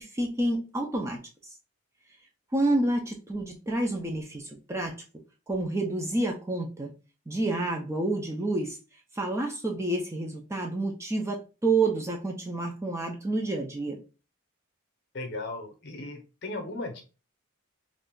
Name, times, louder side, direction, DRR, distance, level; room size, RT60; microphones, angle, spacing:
voice 1, 0.0-1.5 2.5-5.0 5.5-6.9 7.3-8.8 9.1-14.0, right 2 dB, 15° right, 1 dB, 0.4 m, -29 dB
voice 2, 15.1-17.0, left 2 dB, 50° left, 5 dB, 0.7 m, -36 dB
2.5 x 2.2 x 3.6 m, 0.32 s
head